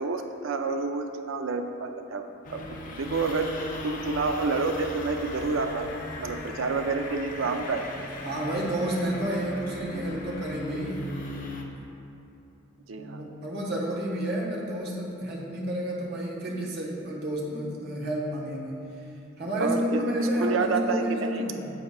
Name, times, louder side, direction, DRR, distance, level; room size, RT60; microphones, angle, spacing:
voice 1, 0.0-3.5 3.8-5.9 6.2-7.9 12.9-13.2 19.6-21.5, right 4 dB, 90° right, 6 dB, 0.5 m, -29 dB
sound 1, 2.4-11.6, left 2 dB, 45° left, 0.6 m, -38 dB
voice 2, 8.2-11.1 13.0-18.8 19.4-21.7, equal, 55° right, -4 dB, 1.2 m, -30 dB
9.0 x 7.9 x 2.3 m, 2.8 s
head